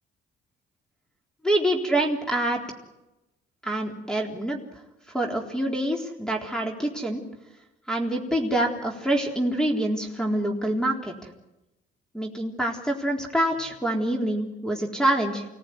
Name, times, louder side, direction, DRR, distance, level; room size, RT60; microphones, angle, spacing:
voice 1, 1.4-2.6 3.6-4.6 5.1-7.2 7.9-11.1 12.1-15.5, right 1 dB, 5° left, 1 dB, 3.8 m, -26 dB
26.5 x 18.0 x 9.6 m, 0.96 s
cardioid pair, 90°, 20 cm